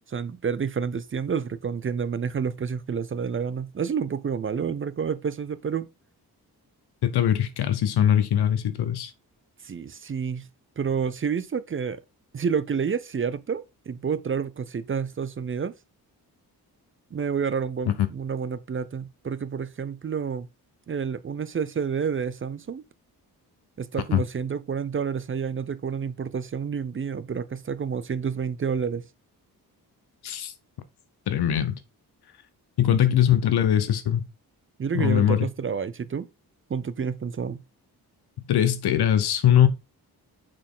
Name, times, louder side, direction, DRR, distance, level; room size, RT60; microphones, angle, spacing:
voice 1, 0.1-5.9 9.6-10.5 10.8-12.0 12.3-15.7 17.1-20.5 20.9-22.8 23.8-29.0 32.9-33.0 34.8-36.3 36.7-37.6, right 6 dB, 35° right, 0.5 m, -29 dB
voice 2, 7.1-9.1 24.1-24.2 30.2-30.5 31.3-31.7 32.8-34.2 34.9-35.5 38.5-39.7, left 10 dB, 80° left, 0.9 m, -21 dB
6.4 x 4.2 x 3.7 m
cardioid pair, 65°, 39 cm